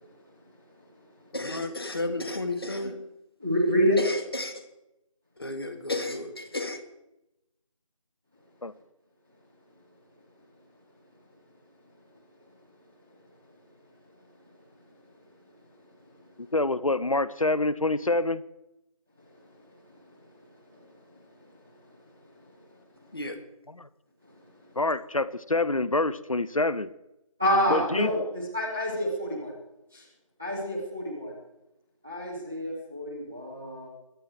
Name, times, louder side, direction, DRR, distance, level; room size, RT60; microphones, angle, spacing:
voice 1, 1.3-3.0 4.0-4.7 5.4-6.8 23.1-23.4, left 2 dB, 45° left, 1.8 m, -32 dB
voice 2, 3.4-4.0 27.4-29.5 29.9-30.0 30.4-31.3 32.0-33.9, equal, 5° right, 0.7 m, -27 dB
voice 3, 16.5-18.4 23.8-23.9 24.8-26.9 27.7-28.1, left 2 dB, 70° left, 0.8 m, -26 dB
22.0 x 9.1 x 4.6 m
figure-of-eight pair, 165°, 18 cm